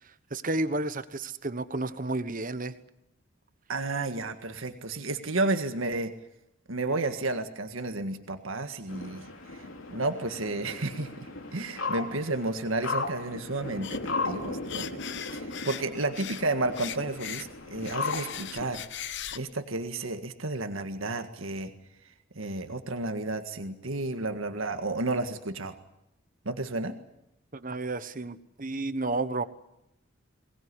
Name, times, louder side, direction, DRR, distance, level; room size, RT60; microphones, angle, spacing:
voice 1, 0.3-2.7 27.5-29.4, right 2 dB, 40° right, 12 dB, 1.2 m, -31 dB
voice 2, 3.7-6.1 6.7-9.3 9.9-18.8 19.3-21.7 22.4-25.7 26.5-26.9, right 2 dB, 75° right, 7 dB, 1.8 m, -32 dB
sound 1, 8.9-18.7, left 3 dB, 75° left, 3.2 m, -36 dB
sound 2, 13.8-14.1 14.4-16.4 16.7-19.4, left 10 dB, 60° left, 1.0 m, -39 dB
23.0 x 19.5 x 9.8 m, 0.85 s
head